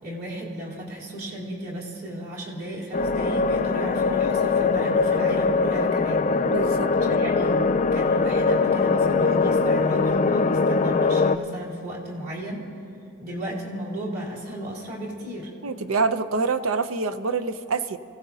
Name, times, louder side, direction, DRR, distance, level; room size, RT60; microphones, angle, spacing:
voice 1, 0.0-6.5 7.1-12.7 13.2-15.5, right 1 dB, 50° right, -3 dB, 3.3 m, -34 dB
sound 1, 2.9-11.4, left 4 dB, 35° left, 0.4 m, -22 dB
voice 2, 6.4-7.3 15.6-18.0, right 4 dB, 85° right, 10 dB, 0.6 m, -26 dB
28.5 x 16.5 x 2.8 m, 2.6 s
head